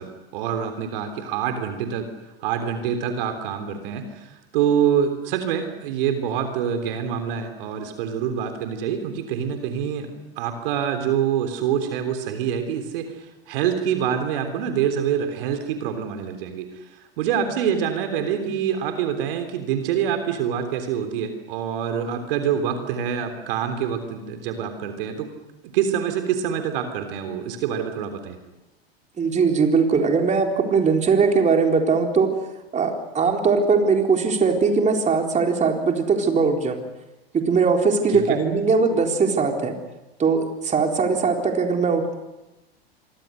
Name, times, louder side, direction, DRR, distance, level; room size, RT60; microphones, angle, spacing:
voice 1, 0.0-2.1 2.4-10.1 10.4-13.1 13.5-16.7 17.2-25.3 25.6-28.4 38.1-38.4, right 8 dB, 60° right, 7 dB, 3.5 m, -26 dB
voice 2, 29.2-32.3 32.7-36.8 37.3-39.8 40.2-42.1, right 5 dB, 25° right, 3 dB, 3.9 m, -20 dB
27.0 x 23.5 x 6.6 m, 1.0 s
hypercardioid pair, 90°, 31 cm